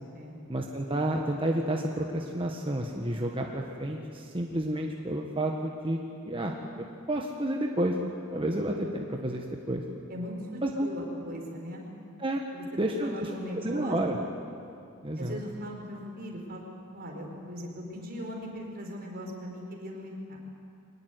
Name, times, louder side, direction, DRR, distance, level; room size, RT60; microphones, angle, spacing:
voice 1, 0.5-6.0 6.3-7.9 8.3-9.8 10.6-10.9 12.2-12.4 12.8-13.3 13.5-14.2 15.0-15.4, right 1 dB, 25° right, 1 dB, 1.5 m, -30 dB
voice 2, 10.1-11.8 12.5-12.6 13.0-14.0 15.2-16.6 16.9-20.4, equal, 45° right, 0 dB, 5.1 m, -39 dB
23.5 x 18.5 x 9.6 m, 2.5 s
head